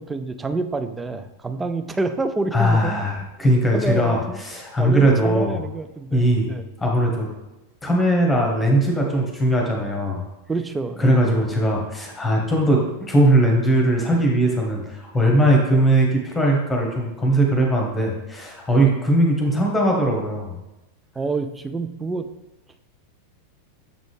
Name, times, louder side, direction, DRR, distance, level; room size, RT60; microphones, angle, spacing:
voice 1, 0.0-3.0 3.7-4.4 4.8-6.7 10.5-11.2 18.7-18.9 21.2-22.3, right 3 dB, 10° right, 9 dB, 0.4 m, -28 dB
voice 2, 2.5-5.6 6.1-6.5 6.8-7.3 7.8-10.2 11.0-20.6, right 1 dB, 10° left, 0 dB, 1.3 m, -19 dB
7.1 x 4.0 x 3.3 m, 1.0 s
figure-of-eight pair, 90°, 0 cm